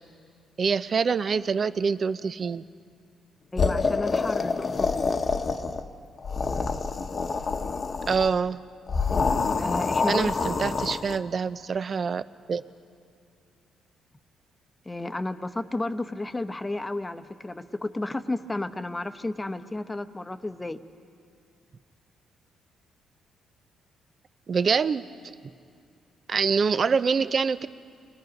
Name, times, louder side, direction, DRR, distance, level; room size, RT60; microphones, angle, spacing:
voice 1, 0.6-2.6 8.1-8.6 10.1-12.2 12.5-12.6 24.5-25.0 26.3-27.7, right 5 dB, 45° right, 14 dB, 0.6 m, -25 dB
voice 2, 3.5-5.1 9.6-10.5 14.8-20.8, left 2 dB, 15° left, 10 dB, 0.9 m, -32 dB
sound 1, 3.6-5.9 6.2-8.3 8.9-11.2, left 4 dB, 40° left, 1.0 m, -27 dB
30.0 x 21.0 x 5.3 m, 2.3 s
cardioid pair, 90°, 0 cm